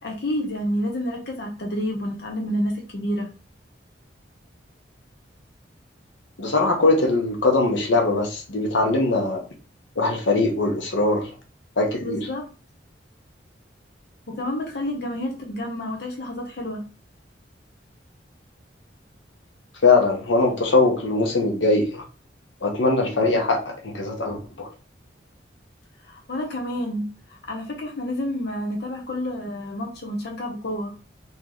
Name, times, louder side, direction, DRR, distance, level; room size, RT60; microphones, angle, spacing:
voice 1, 0.0-3.3 12.0-12.4 14.3-16.8 26.0-30.9, equal, 60° left, 0.7 m, -29 dB
voice 2, 6.4-9.4 10.0-11.3 11.8-12.2 19.8-22.0 22.6-24.7, left 3 dB, 90° left, 0.9 m, -21 dB
3.0 x 2.8 x 3.8 m
head